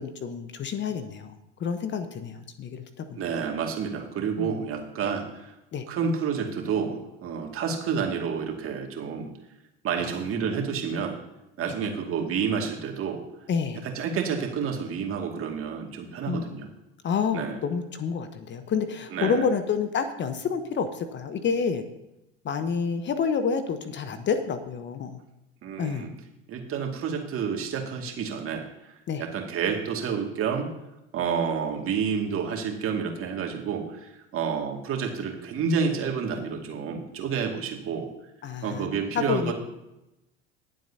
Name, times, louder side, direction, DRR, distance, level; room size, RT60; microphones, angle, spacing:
voice 1, 0.0-3.2 4.4-4.6 5.7-5.8 10.0-10.1 13.5-13.8 16.3-16.5 17.0-21.8 22.4-25.2 25.8-26.1 29.1-29.2 38.4-39.5, left 6 dB, 35° left, 9 dB, 1.0 m, -29 dB
voice 2, 3.2-5.5 5.9-9.3 9.8-11.2 11.6-13.2 13.8-16.7 17.3-17.6 19.1-19.5 25.6-26.1 26.5-28.9 29.2-30.7 31.1-38.1 38.6-39.5, right 6 dB, 40° right, 2 dB, 2.2 m, -29 dB
19.0 x 7.6 x 2.8 m, 0.91 s
hypercardioid pair, 80°, 32 cm